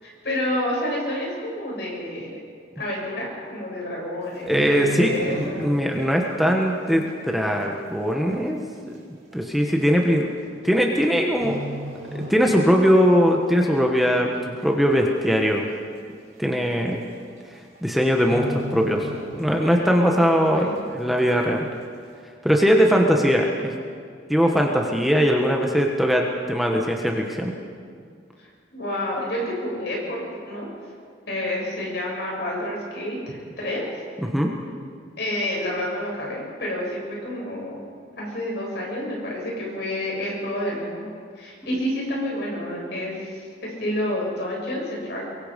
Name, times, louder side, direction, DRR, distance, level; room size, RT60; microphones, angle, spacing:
voice 1, 0.0-2.4 2.8-5.7 20.2-20.7 28.7-30.7 31.3-33.8 35.2-37.8 38.2-45.2, left 1 dB, 65° left, -3 dB, 7.9 m, -29 dB
sound 1, 4.2-6.0 6.2-6.5 7.1-7.2 8.1-8.2 8.4-8.5 9.3-9.5 10.6-11.0 11.3-12.9 13.2-13.4 13.9-14.5 14.8-14.9 15.1-15.2 15.6-15.7 16.7-16.8 17.1-17.4 17.6-17.8 18.2-19.8 20.2-20.3, equal, 40° right, 5.0 m, -34 dB
voice 2, 4.5-8.6 9.3-11.6 12.1-15.7 16.4-17.0 17.8-21.7 22.4-23.7 24.3-27.5 34.2-34.5, equal, ahead, 1 dB, 1.4 m, -20 dB
23.5 x 23.0 x 5.4 m, 2.1 s
head